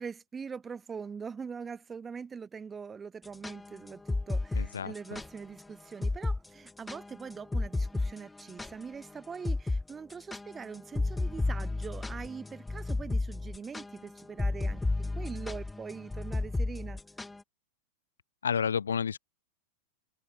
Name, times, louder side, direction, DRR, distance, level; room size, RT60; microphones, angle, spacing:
voice 1, 0.0-14.8 15.2-17.0, right 6 dB, 15° right, 3.1 m, -42 dB
sound 1, 3.3-5.3 5.6-5.7 6.0-6.4 6.7-9.1 9.4-9.8 10.1-17.4, left 2 dB, 10° left, 2.2 m, -32 dB
voice 2, 4.6-5.2 18.4-19.2, left 7 dB, 70° left, 1.8 m, -31 dB
open air
figure-of-eight pair, 90°, 0 cm